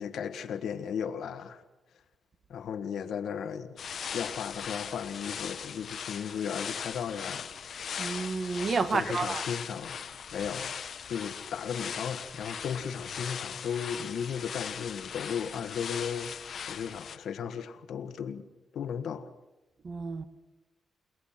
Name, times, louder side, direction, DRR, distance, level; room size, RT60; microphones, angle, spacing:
voice 1, 0.0-1.6 2.5-7.5 8.9-10.0 10.3-10.8 11.1-16.3 16.6-18.4 18.7-19.3, left 7 dB, 70° left, 1.5 m, -35 dB
sound 1, 3.8-17.2, left 7 dB, 50° left, 1.1 m, -39 dB
voice 2, 8.0-9.4 19.8-20.2, right 4 dB, 40° right, 1.3 m, -30 dB
29.0 x 19.0 x 5.9 m
cardioid pair, 135°, 0 cm